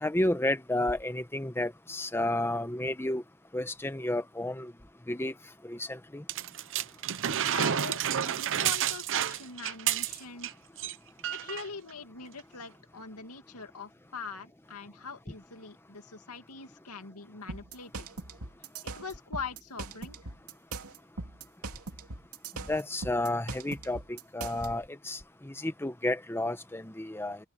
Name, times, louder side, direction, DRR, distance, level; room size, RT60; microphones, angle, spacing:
voice 1, 0.0-3.2 3.5-4.7 5.1-5.3 5.6-6.2 22.7-27.4, left 1 dB, 10° left, 0.9 m, -31 dB
sound 1, 6.3-10.5 10.8-10.9 11.2-11.7 12.4-12.5, right 10 dB, 60° right, 0.7 m, -30 dB
voice 2, 7.5-10.5 11.3-18.1 18.8-20.2, left 5 dB, 85° left, 2.3 m, -43 dB
sound 2, 17.5-24.7, right 3 dB, 85° right, 2.6 m, -40 dB
open air
head